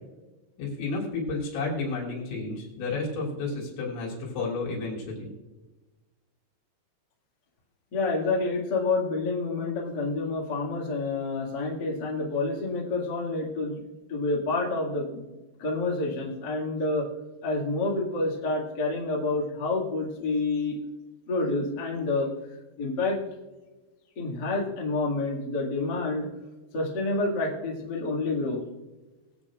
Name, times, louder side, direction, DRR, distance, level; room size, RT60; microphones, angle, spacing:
voice 1, 0.6-5.3, left 3 dB, 80° left, -4 dB, 5.5 m, -31 dB
voice 2, 7.9-13.8 14.1-15.2 15.6-17.1 17.4-20.7 21.3-22.3 22.8-23.2 24.1-26.3 26.7-28.6, left 3 dB, 45° left, -3 dB, 1.4 m, -28 dB
23.0 x 8.3 x 2.4 m, 1.2 s
omnidirectional pair, 5.4 m